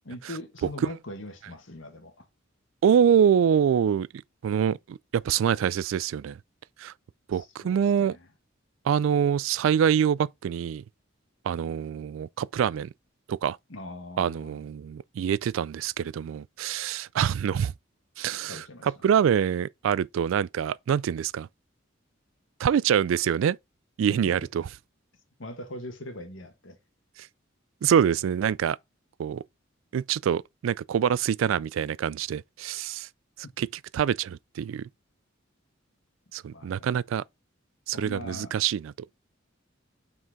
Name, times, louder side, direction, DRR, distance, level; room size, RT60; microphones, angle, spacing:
voice 1, 0.0-2.2 7.3-8.3 13.7-14.6 18.5-19.0 24.1-24.3 25.4-26.8 33.4-33.5 36.5-36.9 37.9-38.5, left 1 dB, 70° left, 1.7 m, -41 dB
voice 2, 2.8-6.4 6.8-6.9 7.3-8.2 8.8-10.8 11.4-12.9 13.3-13.6 14.2-17.7 18.2-21.5 22.6-23.6 24.0-24.6 27.2-27.3 27.8-28.8 29.2-29.4 29.9-33.1 33.6-33.7 33.9-34.9 36.3-37.2 37.9-38.9, right 8 dB, 70° right, 0.3 m, -25 dB
6.2 x 4.5 x 3.7 m
head